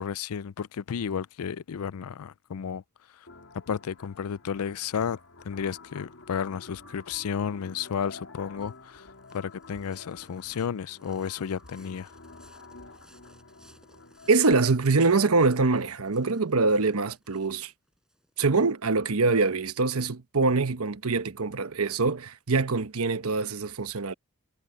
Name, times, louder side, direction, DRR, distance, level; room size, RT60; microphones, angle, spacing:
voice 1, 0.0-2.8 3.1-3.3 3.5-5.2 5.4-9.1 9.3-12.1, left 7 dB, 90° left, 0.4 m, -32 dB
sound 1, 3.3-14.5, left 3 dB, 70° left, 3.0 m, -49 dB
sound 2, 8.1-18.9, right 1 dB, 5° right, 5.5 m, -61 dB
voice 2, 14.3-17.7 18.4-24.1, right 3 dB, 85° right, 1.1 m, -24 dB
head